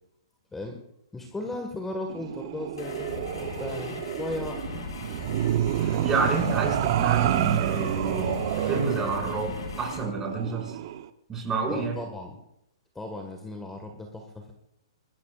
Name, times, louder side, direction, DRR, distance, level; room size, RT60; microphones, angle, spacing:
voice 1, 0.5-0.8 1.1-4.8 11.7-12.4 13.0-14.5, left 2 dB, 10° left, 3 dB, 1.7 m, -36 dB
sound 1, 2.1-11.0, right 11 dB, 50° right, 0.9 m, -29 dB
sound 2, 2.8-10.0, left 5 dB, 70° left, 7.3 m, -39 dB
voice 2, 5.8-10.8 11.3-12.0, right 3 dB, 15° right, -1 dB, 5.5 m, -29 dB
25.0 x 21.0 x 2.5 m, 0.82 s
figure-of-eight pair, 120°, 3 cm